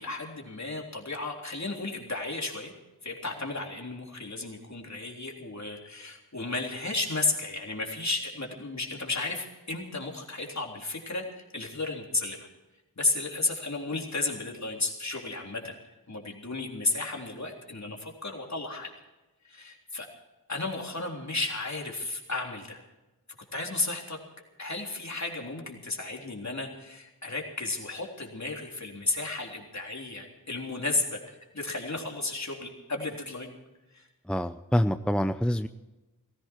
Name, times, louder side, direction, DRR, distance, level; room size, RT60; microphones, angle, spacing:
voice 1, 0.0-2.7 3.0-12.4 13.0-15.7 16.1-18.9 19.5-20.1 20.5-22.8 23.5-24.2 24.6-33.5 33.9-34.1, left 2 dB, 45° left, 1 dB, 3.7 m, -33 dB
voice 2, 34.3-35.7, equal, 5° left, 10 dB, 0.6 m, -26 dB
18.5 x 16.0 x 4.6 m, 1.1 s
wide cardioid pair, 55°, 37 cm